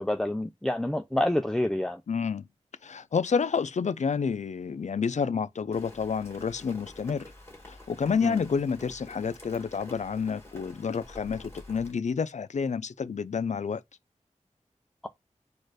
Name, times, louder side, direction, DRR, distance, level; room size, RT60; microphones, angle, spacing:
voice 1, 0.0-2.0 8.2-8.4, left 1 dB, 5° left, 0.4 m, -28 dB
voice 2, 2.1-2.5 2.8-7.3 7.7-13.8, left 6 dB, 70° left, 0.4 m, -29 dB
Rain, 5.7-11.9, left 1 dB, 20° left, 1.9 m, -48 dB
4.3 x 2.5 x 4.7 m
wide cardioid pair, 75°, 13 cm